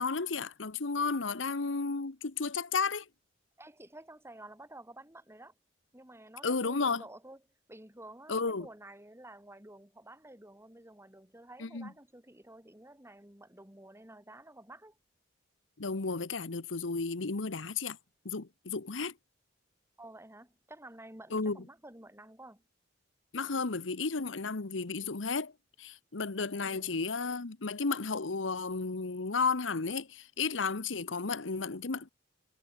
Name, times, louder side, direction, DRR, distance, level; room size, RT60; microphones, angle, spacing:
voice 1, 0.0-3.0 6.4-7.0 8.3-8.7 11.6-11.9 15.8-18.0 18.2-19.1 21.3-21.6 23.3-25.5 25.8-32.1, left 4 dB, 90° left, 1.1 m, -33 dB
voice 2, 3.6-5.5 5.9-7.4 7.7-15.0 20.0-22.6 26.6-26.9, right 1 dB, 15° right, 6.1 m, -51 dB
head